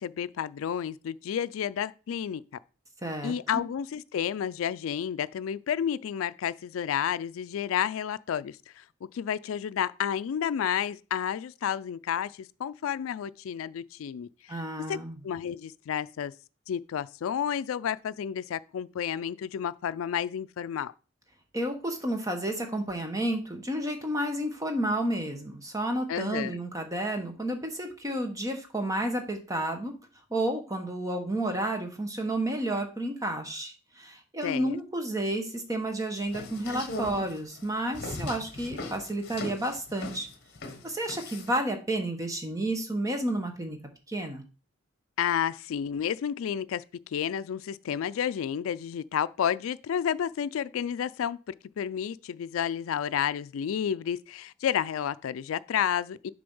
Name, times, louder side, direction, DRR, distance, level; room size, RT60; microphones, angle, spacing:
voice 1, 0.0-2.4 3.2-8.8 9.1-14.6 14.9-16.3 16.7-20.9 26.1-26.6 34.4-34.8 45.2-51.4 51.8-56.3, left 8 dB, 90° left, 0.3 m, -31 dB
voice 2, 3.0-3.3 14.5-15.2 21.5-30.0 30.3-40.3 40.8-43.8 44.1-44.4, right 1 dB, 15° right, 1.0 m, -31 dB
sound 1, 36.2-41.6, left 2 dB, 50° left, 1.2 m, -39 dB
6.8 x 3.3 x 5.4 m
head